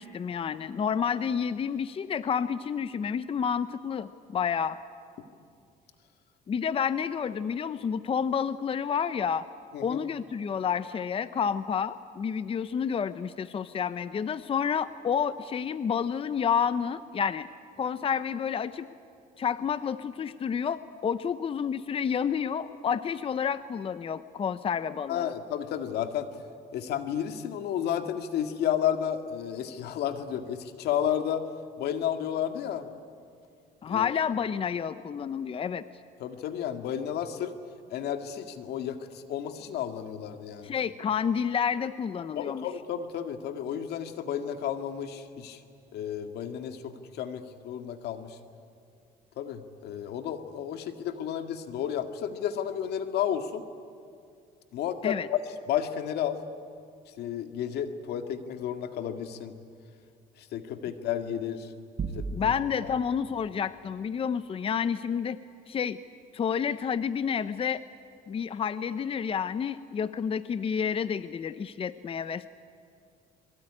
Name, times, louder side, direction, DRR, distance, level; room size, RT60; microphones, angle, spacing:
voice 1, 0.0-4.8 6.5-9.4 9.8-17.5 17.8-18.9 19.4-25.3 33.8-35.9 40.6-42.7 55.0-55.3 62.3-65.4 65.7-66.0 66.3-67.8 68.3-72.5, left 7 dB, 35° left, 14 dB, 0.7 m, -29 dB
voice 2, 25.1-26.3 26.7-31.5 31.8-32.9 33.9-34.1 36.2-37.5 37.9-40.7 42.4-45.6 45.9-48.4 49.4-53.6 54.7-55.4 55.7-56.4 57.2-59.5 60.4-61.7 62.1-62.5 62.8-62.9, left 9 dB, 75° left, 8 dB, 1.9 m, -32 dB
sound 1, 62.0-63.0, right 4 dB, 45° right, 4.0 m, -34 dB
26.0 x 22.5 x 9.9 m, 2.3 s
cardioid pair, 110°, 17 cm